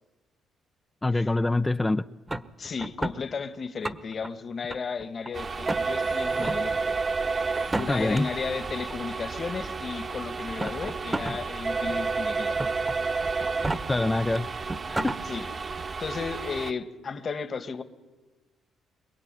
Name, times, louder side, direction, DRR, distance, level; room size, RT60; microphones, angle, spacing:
voice 1, 1.0-2.0 7.9-8.3 13.9-14.5 14.9-15.1, left 2 dB, 15° left, 8 dB, 0.7 m, -25 dB
sound 1, 2.3-3.2 3.7-4.3 4.7-5.3 5.7-5.8 6.3-6.6 7.6-8.2 9.3-9.4 10.4-11.4 11.8-11.9 12.6-13.0 13.5-13.8 14.4-14.5 14.7-15.2, right 2 dB, 20° right, 1.4 m, -31 dB
voice 2, 2.6-7.0 7.7-12.6 13.4-13.5 14.2-14.4 15.3-15.5 16.0-17.8, left 5 dB, 45° left, 9 dB, 1.9 m, -34 dB
Bicycle bell, 4.0-5.3 6.0-7.1 7.5-8.8 9.5-9.6, right 10 dB, 90° right, 5.9 m, -62 dB
sound 2, 5.3-16.7, right 4 dB, 40° right, 1.5 m, -31 dB
25.0 x 22.0 x 9.2 m, 1.3 s
supercardioid pair, 70°, 0 cm